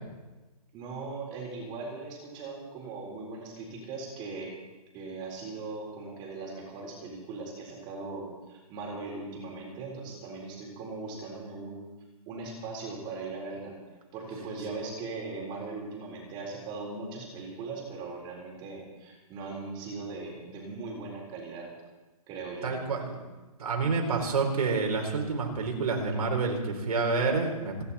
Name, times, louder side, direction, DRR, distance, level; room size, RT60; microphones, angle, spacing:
voice 1, 0.7-4.5 4.9-11.9 12.3-13.7 14.1-21.7 22.3-22.7, right 3 dB, 25° right, -1 dB, 4.1 m, -39 dB
voice 2, 22.6-23.2 23.6-27.8, right 4 dB, 80° right, 2 dB, 4.3 m, -28 dB
29.5 x 11.0 x 4.3 m, 1.2 s
hypercardioid pair, 155°, 19 cm